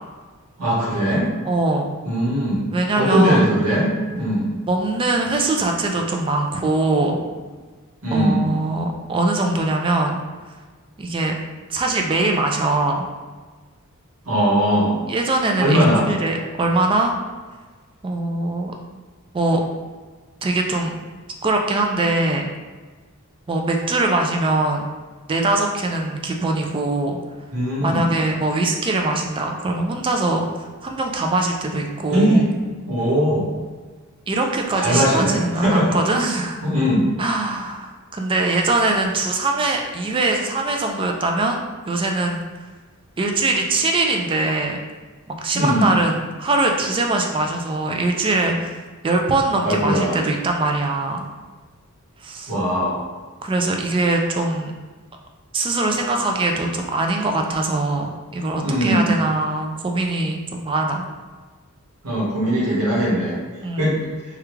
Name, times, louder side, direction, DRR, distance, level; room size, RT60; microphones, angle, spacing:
voice 1, 0.6-1.3 2.0-2.7 2.9-4.5 8.0-8.5 14.2-15.0 15.6-16.0 27.5-28.0 32.1-32.4 32.9-33.5 34.8-36.0 36.6-37.1 45.5-45.9 49.6-50.2 52.5-53.0 58.6-59.1 62.0-63.4 63.7-64.0, equal, 80° right, -6 dB, 1.2 m, -20 dB
voice 2, 1.4-1.9 2.7-3.4 4.7-7.2 8.1-10.2 11.0-11.3 11.7-13.1 15.1-17.1 18.0-18.7 19.3-19.6 20.4-20.9 21.4-22.5 23.5-24.8 25.3-27.2 27.8-32.4 34.3-36.6 37.2-42.4 43.2-44.8 45.3-51.3 52.2-52.5 53.4-54.7 55.5-61.1 63.6-63.9, right 2 dB, 25° right, 2 dB, 0.3 m, -22 dB
3.4 x 2.4 x 3.1 m, 1.4 s
head